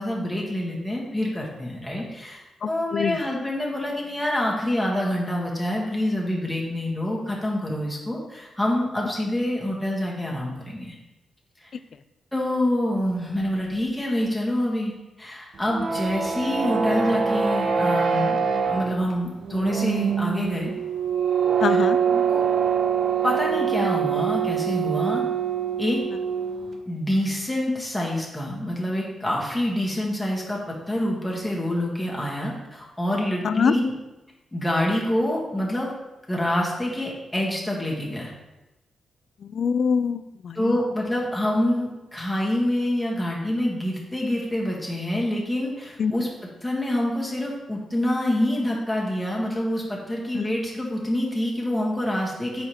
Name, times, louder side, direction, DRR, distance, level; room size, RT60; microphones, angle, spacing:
voice 1, 0.0-10.9 11.6-11.7 12.3-14.9 15.2-18.4 18.7-20.7 22.1-22.4 23.2-25.2 25.8-26.0 26.8-33.9 34.5-35.9 36.3-38.3 40.6-46.3 46.6-52.7, left 1 dB, 5° left, -4 dB, 1.6 m, -26 dB
voice 2, 2.6-3.2 21.6-22.0 33.4-33.7 39.4-40.8 46.0-46.1 50.3-50.6, left 6 dB, 60° left, 13 dB, 0.3 m, -24 dB
sound 1, 15.6-26.8, right 7 dB, 60° right, 0.6 m, -24 dB
4.7 x 4.4 x 4.9 m, 1.0 s
cardioid pair, 85°, 0 cm